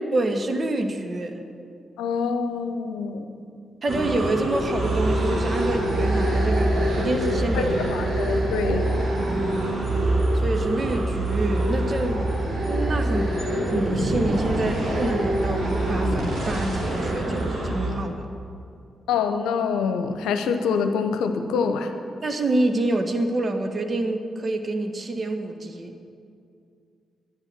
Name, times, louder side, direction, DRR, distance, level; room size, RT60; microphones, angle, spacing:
voice 1, 0.1-1.4 3.8-8.3 9.3-9.7 10.4-12.3 12.6-18.3 22.2-25.9, right 2 dB, 45° right, 5 dB, 1.5 m, -27 dB
voice 2, 2.0-3.2 7.5-8.9 19.1-21.9, left 5 dB, 75° left, 7 dB, 0.9 m, -25 dB
sound 1, 3.9-17.5, right 2 dB, 25° right, 4.5 m, -36 dB
sound 2, 3.9-17.9, right 1 dB, 65° right, 3.4 m, -25 dB
10.5 x 10.0 x 9.1 m, 2.4 s
hypercardioid pair, 40°, 0 cm